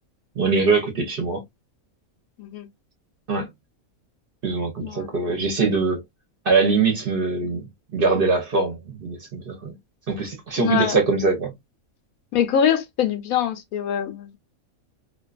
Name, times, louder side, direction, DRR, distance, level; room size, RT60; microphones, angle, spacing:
voice 1, 0.4-1.4 3.3-3.5 4.4-6.0 6.5-7.7 7.9-9.7 10.1-11.5, right 4 dB, 50° right, 0.7 m, -22 dB
voice 2, 10.6-11.0 12.3-14.4, left 9 dB, 85° left, 1.1 m, -23 dB
2.5 x 2.3 x 2.3 m
omnidirectional pair, 1.5 m